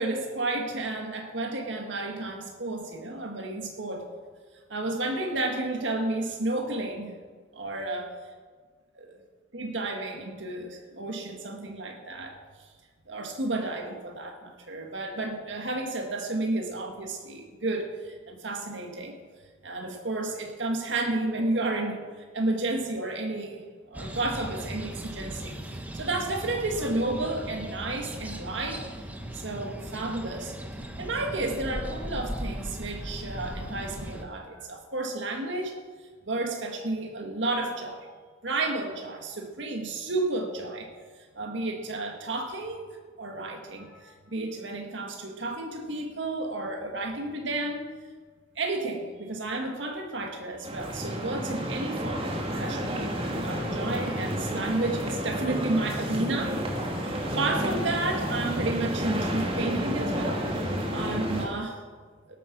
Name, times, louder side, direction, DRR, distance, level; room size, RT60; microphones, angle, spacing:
voice 1, 0.0-4.1 4.7-7.1 7.5-8.1 8.9-9.1 9.5-12.7 13.1-19.2 19.6-28.8 29.3-35.7 36.3-38.1 38.4-40.9 41.4-47.9 48.6-52.3 52.6-60.5 60.9-61.8, right 2 dB, 70° right, 2 dB, 1.8 m, -32 dB
sound 1, 23.9-34.2, right 1 dB, 10° right, 1.2 m, -38 dB
sound 2, 50.6-61.5, equal, 30° right, 2.3 m, -31 dB
18.5 x 9.2 x 6.2 m, 1.6 s
head